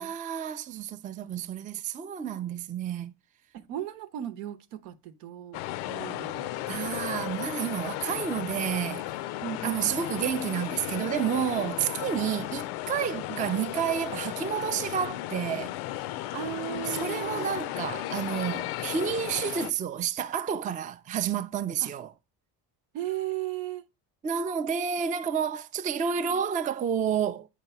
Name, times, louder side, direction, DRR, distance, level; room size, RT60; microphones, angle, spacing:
voice 1, 0.0-3.1 6.7-9.1 9.6-16.1 16.9-22.1 24.2-27.5, right 8 dB, 20° right, 0.3 m, -30 dB
voice 2, 3.5-5.6 5.9-7.3 9.4-10.1 13.1-13.4 16.3-17.7 21.8-21.9 22.9-23.8 26.2-26.3, right 12 dB, 80° right, 0.9 m, -37 dB
sound 1, 5.5-19.7, left 15 dB, 70° left, 0.5 m, -35 dB
8.1 x 2.9 x 5.7 m
supercardioid pair, 75°, 49 cm